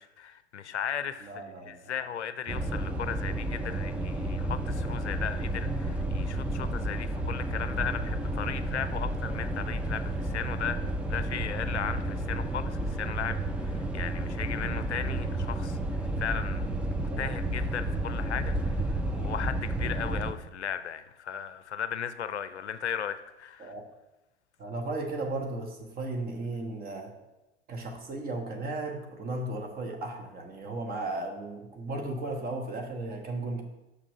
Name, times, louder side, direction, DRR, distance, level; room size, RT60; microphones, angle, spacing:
voice 1, 0.0-23.7, left 8 dB, 75° left, 12 dB, 0.5 m, -36 dB
voice 2, 1.2-2.0 16.9-17.3 23.6-23.8 24.6-27.1 27.7-33.6, right 2 dB, 25° right, 3 dB, 1.4 m, -35 dB
sound 1, 2.5-20.3, right 1 dB, 5° right, 0.3 m, -31 dB
6.0 x 5.9 x 5.3 m, 0.98 s
figure-of-eight pair, 85°, 34 cm